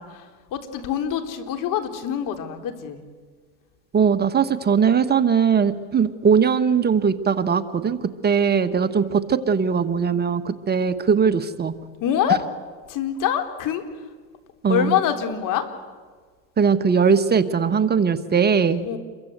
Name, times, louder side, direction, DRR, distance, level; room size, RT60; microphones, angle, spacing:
voice 1, 0.0-3.0 12.0-12.4 12.9-13.8 14.7-15.7 18.8-19.0, left 9 dB, 55° left, 7 dB, 4.0 m, -25 dB
voice 2, 3.9-8.0 8.2-11.7 14.6-15.0 16.6-18.9, right 6 dB, 25° right, 9 dB, 1.4 m, -20 dB
28.5 x 23.5 x 8.2 m, 1.5 s
supercardioid pair, 110°, 38 cm